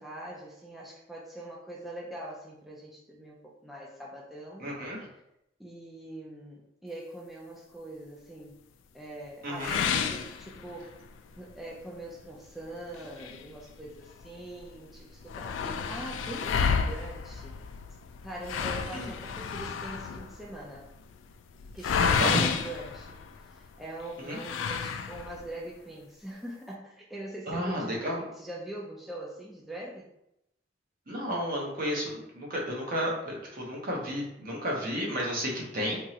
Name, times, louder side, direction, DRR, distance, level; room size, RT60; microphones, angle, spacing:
voice 1, 0.0-4.7 5.6-8.6 8.9-10.9 11.4-17.6 18.2-20.9 21.7-27.9 28.2-30.1, right 1 dB, ahead, -4 dB, 0.4 m, -42 dB
voice 2, 4.6-5.1 9.4-9.8 18.9-19.1 22.2-22.4 24.2-24.4 27.5-28.2 31.1-36.0, equal, 50° right, -3 dB, 0.9 m, -32 dB
sound 1, 9.6-11.1 11.5-11.6 12.1-12.2 12.9-14.3 14.6-14.7 14.9-23.7 24.3-25.5, left 6 dB, 85° left, 0.3 m, -31 dB
3.5 x 3.0 x 2.8 m, 0.84 s
head